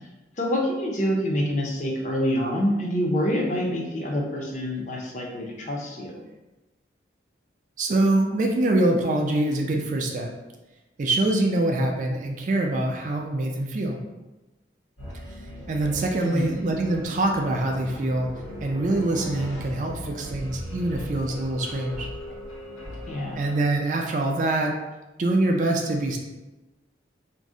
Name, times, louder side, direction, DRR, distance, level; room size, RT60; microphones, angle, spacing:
voice 1, 0.4-6.2 16.2-16.5 23.1-23.4, equal, 40° left, 0 dB, 0.4 m, -26 dB
voice 2, 7.8-10.3 11.0-14.0 15.7-18.3 18.6-22.1 23.3-24.7 25.2-26.2, right 2 dB, 40° right, 2 dB, 0.3 m, -24 dB
sound 1, 15.0-23.7, equal, 70° left, 0.8 m, -38 dB
2.5 x 2.0 x 3.6 m, 1.1 s
head